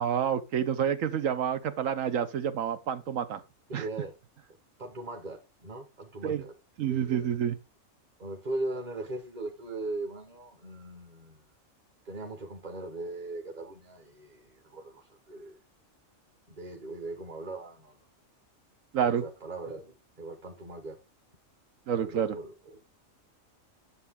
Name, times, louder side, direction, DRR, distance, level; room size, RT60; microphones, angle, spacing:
voice 1, 0.0-3.4 3.7-3.8 6.2-6.4 6.8-7.6 18.9-19.2 21.9-22.4, right 8 dB, 75° right, 1.2 m, -28 dB
voice 2, 3.7-4.2 4.8-6.5 6.9-7.3 8.2-11.4 12.0-15.6 16.5-18.0 19.0-19.9 20.2-21.0 21.9-22.8, right 2 dB, 35° right, 1.5 m, -39 dB
10.5 x 7.0 x 3.7 m
omnidirectional pair, 1.4 m